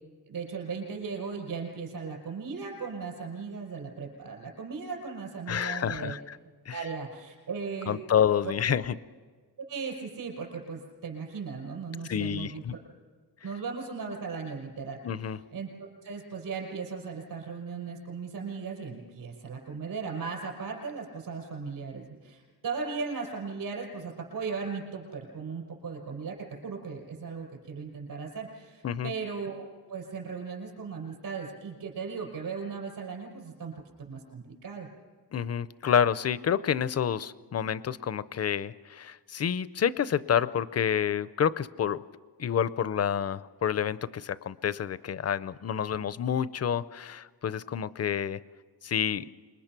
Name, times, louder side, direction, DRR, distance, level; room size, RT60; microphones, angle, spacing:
voice 1, 0.3-6.2 6.7-8.1 8.4-8.8 9.7-12.8 13.4-29.6 29.9-33.7 34.0-34.9, right 5 dB, 65° right, 1 dB, 5.7 m, -37 dB
voice 2, 5.5-6.4 6.7-6.8 7.9-8.9 12.1-12.7 15.0-15.4 28.8-29.1 35.3-42.0 42.4-48.4 48.8-49.2, left 8 dB, 40° left, 17 dB, 0.6 m, -28 dB
27.0 x 22.0 x 6.0 m, 1.5 s
wide cardioid pair, 170°, 37 cm